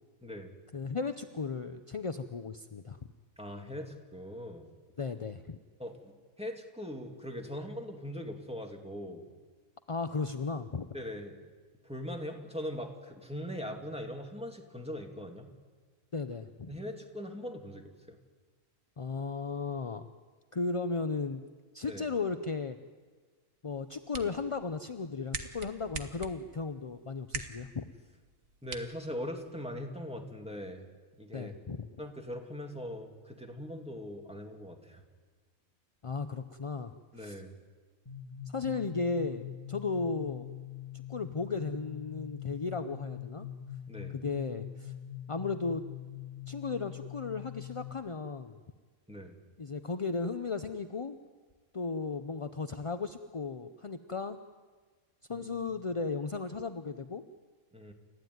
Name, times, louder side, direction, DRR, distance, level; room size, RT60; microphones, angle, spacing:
voice 1, 0.7-3.0 5.0-5.6 9.9-10.9 16.1-16.7 19.0-20.1 20.5-21.4 21.7-22.8 23.6-27.9 31.3-31.9 36.0-37.4 38.5-40.5 41.1-43.5 44.1-44.9 45.3-45.8 46.5-48.6 49.6-51.2 51.7-54.4 55.3-57.2, left 4 dB, 35° left, 8 dB, 0.5 m, -35 dB
voice 2, 3.4-4.7 5.8-9.4 10.9-11.4 11.8-15.5 16.7-18.2 21.8-22.1 24.2-24.3 28.6-30.8 31.2-31.5 32.0-35.0 37.1-37.5 43.9-44.2 49.1-49.4 55.3-55.9 57.7-57.9, equal, 5° right, 3 dB, 2.4 m, -41 dB
sound 1, 23.7-29.7, right 5 dB, 65° right, 1.8 m, -45 dB
sound 2, 38.1-47.9, left 11 dB, 20° left, 2.3 m, -43 dB
29.5 x 15.0 x 9.5 m, 1.4 s
omnidirectional pair, 1.5 m